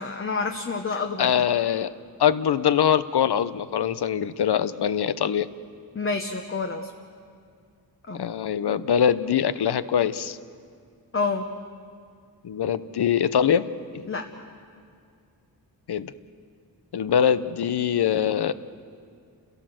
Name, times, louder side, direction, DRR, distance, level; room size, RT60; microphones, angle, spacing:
voice 1, 0.0-1.3 5.9-6.9 8.1-8.2 11.1-11.5 14.1-14.2, left 4 dB, 35° left, 4 dB, 0.9 m, -28 dB
voice 2, 1.2-1.9 2.2-5.5 8.1-10.4 12.4-13.7 13.9-14.0 15.9-16.1 16.9-18.5, left 8 dB, 85° left, 14 dB, 0.8 m, -23 dB
30.0 x 16.5 x 7.7 m, 2.3 s
wide cardioid pair, 160°, 38 cm